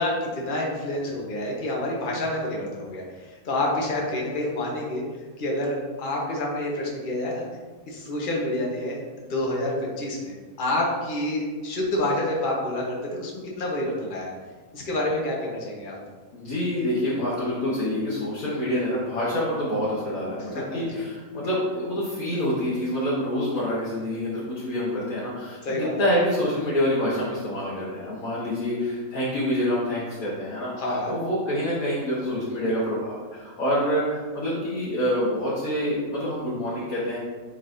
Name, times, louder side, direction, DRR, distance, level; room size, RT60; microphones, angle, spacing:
voice 1, 0.0-5.0 5.4-7.4 7.9-14.3 14.7-16.0 20.4-21.0 25.6-25.9 30.8-31.1, left 1 dB, 35° left, -2 dB, 1.1 m, -28 dB
voice 2, 16.3-37.2, equal, 65° left, -8 dB, 1.7 m, -27 dB
9.7 x 4.0 x 2.6 m, 1.4 s
omnidirectional pair, 1.6 m